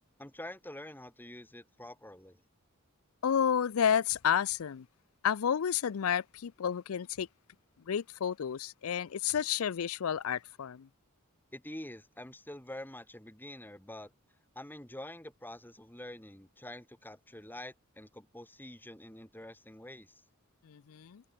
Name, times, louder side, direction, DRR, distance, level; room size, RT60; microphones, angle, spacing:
voice 1, 0.2-2.4 11.5-14.1 14.5-20.2, left 1 dB, 10° left, 4.6 m, -46 dB
voice 2, 3.2-4.9 5.2-7.3 7.9-10.9 20.6-21.2, left 8 dB, 75° left, 0.4 m, -31 dB
head